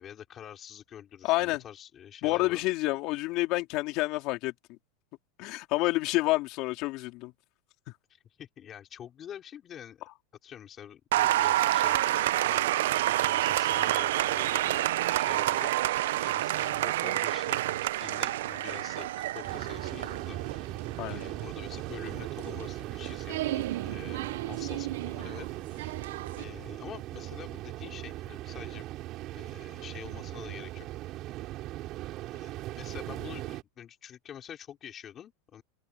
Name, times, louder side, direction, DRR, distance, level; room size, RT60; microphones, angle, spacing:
voice 1, 0.0-2.6 8.4-10.0 10.4-20.7 21.1-26.0 26.4-28.9 29.3-30.9 32.3-35.6, left 9 dB, 25° left, 5.0 m, -46 dB
voice 2, 1.2-1.6 2.2-4.8 5.4-7.3 21.0-21.2, left 20 dB, 40° left, 3.6 m, -29 dB
Applause, 11.1-26.4, right 15 dB, 75° right, 0.5 m, -29 dB
sound 1, 19.4-33.6, right 16 dB, 35° right, 3.9 m, -39 dB
open air
supercardioid pair, 165°, 0 cm